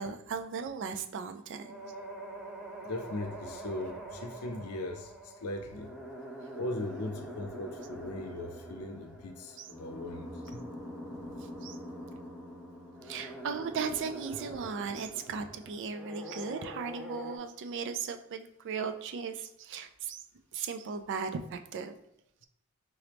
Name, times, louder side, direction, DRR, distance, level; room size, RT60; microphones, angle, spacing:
voice 1, 0.0-1.9 9.6-9.7 11.6-11.8 13.0-20.2 20.5-21.9, right 5 dB, 55° right, 8 dB, 0.4 m, -37 dB
sound 1, 1.6-17.4, right 1 dB, 5° right, 0.5 m, -44 dB
voice 2, 2.8-5.9 6.5-10.6, left 2 dB, 90° left, 6 dB, 0.5 m, -39 dB
3.8 x 2.9 x 3.3 m, 0.78 s
head